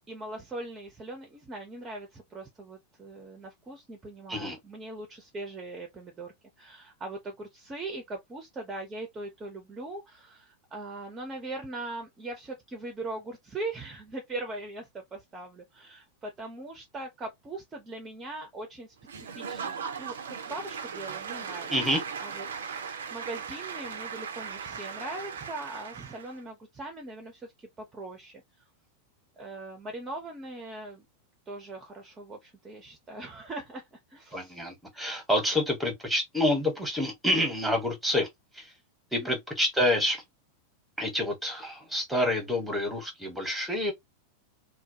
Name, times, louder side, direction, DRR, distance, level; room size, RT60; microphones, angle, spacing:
voice 1, 0.1-28.6 29.4-31.0 31.5-34.6 39.1-39.4, right 2 dB, 20° right, 0.6 m, -41 dB
Applause / Crowd, 19.1-26.4, right 6 dB, 65° right, 0.4 m, -38 dB
voice 2, 21.7-22.0 34.3-38.3 38.5-38.7 39.1-40.2 41.0-43.9, left 1 dB, 5° right, 1.0 m, -28 dB
2.2 x 2.1 x 2.6 m
figure-of-eight pair, 90°, 0 cm